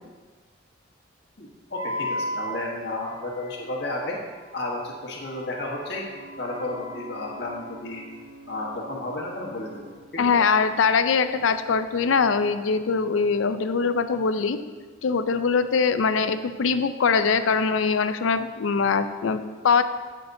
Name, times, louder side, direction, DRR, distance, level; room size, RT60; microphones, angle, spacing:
voice 1, 1.4-4.2 4.5-6.0 6.4-8.0 8.5-10.2, left 2 dB, 55° left, -2 dB, 1.2 m, -32 dB
Wind instrument woodwind instrument, 1.7-7.9, left 1 dB, 80° right, 1.4 m, -37 dB
Ocean / Boat Water vehicle / Alarm, 5.9-13.5, right 2 dB, 60° right, 1.7 m, -50 dB
voice 2, 10.2-14.6 15.0-19.8, left 5 dB, 85° left, 11 dB, 0.5 m, -22 dB
14.5 x 6.0 x 2.6 m, 1.4 s
head